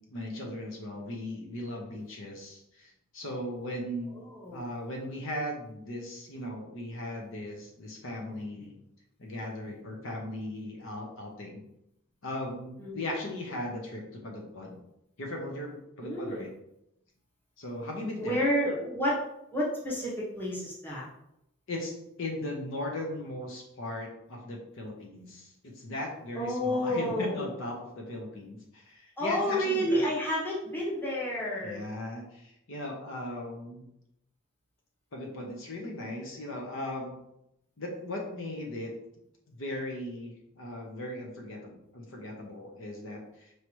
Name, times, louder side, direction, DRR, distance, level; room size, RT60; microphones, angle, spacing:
voice 1, 0.1-4.2 4.5-8.7 9.2-11.6 12.2-14.8 15.2-16.5 17.6-18.4 21.7-30.1 31.6-33.9 35.1-37.2 37.8-38.9 39.5-43.5, left 1 dB, 65° left, 0 dB, 0.8 m, -38 dB
voice 2, 16.0-16.5 18.2-19.2 19.5-21.1 26.4-27.6 29.2-31.8, equal, 10° left, -6 dB, 1.0 m, -30 dB
4.7 x 2.8 x 3.1 m, 0.81 s
head